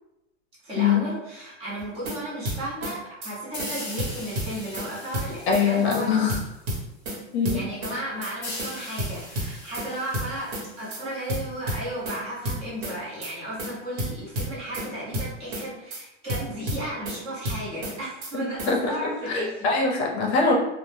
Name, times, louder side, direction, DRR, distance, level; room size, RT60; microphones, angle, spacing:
voice 1, 0.6-6.1 7.5-19.7, right 1 dB, 15° right, -8 dB, 0.6 m, -34 dB
sound 1, 1.8-2.2 2.5-2.9 3.2-3.3 3.6-3.7 4.0-4.9 5.1-5.6 5.9-6.0 6.3-7.2 7.5-7.9 8.2-8.3 8.6-8.7 9.0-9.9 10.1-10.6 10.9-11.0 11.3-12.2 12.5-12.9 13.2-13.3 13.6-13.7 14.0-14.9 15.1-15.6 15.9-16.0 16.3-17.2 17.5-17.9 18.2-18.3 18.6-18.7, equal, 55° right, 1.0 m, -30 dB
sound 2, 3.5-6.9 8.4-11.9, left 2 dB, 20° left, 0.4 m, -41 dB
voice 2, 5.5-6.4 7.3-7.6 7.9-8.0 18.3-18.9 19.3-20.5, left 5 dB, 60° left, 0 dB, 0.6 m, -23 dB
2.1 x 2.1 x 3.1 m, 0.94 s
supercardioid pair, 170°, 37 cm